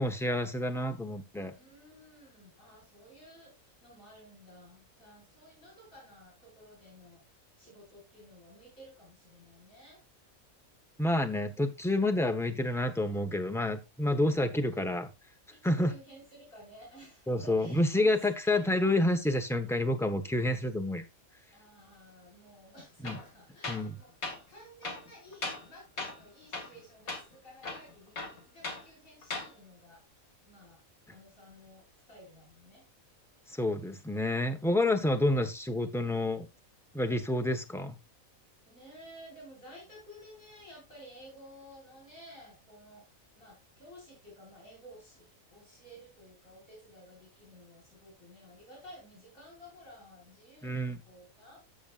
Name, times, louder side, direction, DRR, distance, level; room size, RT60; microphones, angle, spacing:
voice 1, 0.0-1.5 11.0-15.1 15.6-15.9 17.3-21.0 23.0-23.2 23.7-24.0 33.5-36.5 36.9-38.0 50.6-51.0, left 1 dB, ahead, 0.8 m, -29 dB
voice 2, 1.5-10.0 15.5-18.9 21.5-24.2 24.5-30.8 31.1-32.8 38.6-51.6, equal, 70° left, 6.0 m, -54 dB
Tools, 23.0-23.3 23.6-23.9 24.2-24.4 24.8-25.7 26.0-26.2 26.5-26.8 27.1-27.2 27.6-28.8 29.2-29.5, left 3 dB, 90° left, 2.2 m, -38 dB
13.5 x 7.1 x 2.4 m
omnidirectional pair, 1.4 m